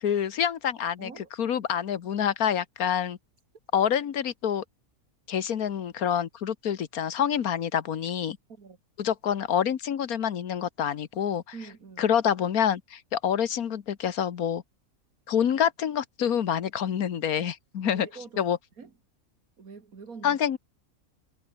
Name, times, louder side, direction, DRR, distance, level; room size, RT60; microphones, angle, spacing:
voice 1, 0.0-1.1 1.4-3.2 3.7-4.6 5.3-8.4 9.0-11.4 12.0-14.6 15.3-18.1 18.4-18.6 20.2-20.6, left 8 dB, 80° left, 1.6 m, -27 dB
voice 2, 1.0-1.3 8.5-8.8 11.5-12.1 17.8-18.9 19.6-20.4, right 5 dB, 75° right, 2.6 m, -45 dB
omnidirectional pair, 1.5 m